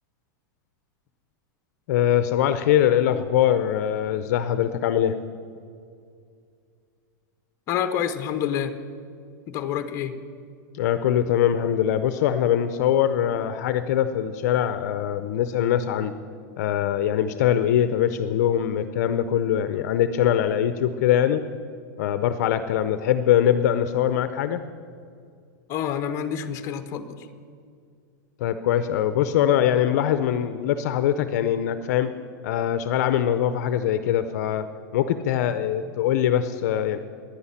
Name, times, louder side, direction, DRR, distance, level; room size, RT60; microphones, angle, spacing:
voice 1, 1.9-5.2 10.7-16.1 16.6-21.4 22.0-24.6 28.4-32.1 32.4-34.7 34.9-37.0, left 10 dB, 55° left, 11 dB, 0.6 m, -22 dB
voice 2, 7.7-8.8 9.5-10.2 25.7-27.2, left 9 dB, 25° left, 9 dB, 0.9 m, -28 dB
10.5 x 9.9 x 9.9 m, 2.3 s
supercardioid pair, 165°, 11 cm